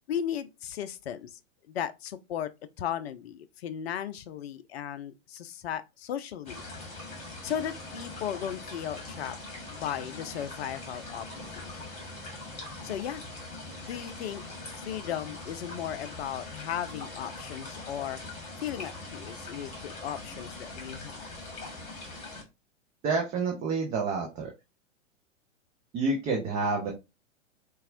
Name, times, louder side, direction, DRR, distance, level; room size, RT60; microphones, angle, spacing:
voice 1, 0.1-1.4 1.7-2.5 2.8-6.6 7.4-9.4 9.7-11.3 11.6-11.8 12.8-13.2 13.9-14.4 14.7-18.2 18.6-21.3, left 9 dB, 55° left, 0.5 m, -36 dB
sound 1, 6.4-22.4, left 2 dB, 15° left, 1.2 m, -42 dB
voice 2, 23.0-24.5 25.9-26.9, right 4 dB, 15° right, 0.4 m, -28 dB
4.0 x 2.3 x 2.5 m
figure-of-eight pair, 105°, 37 cm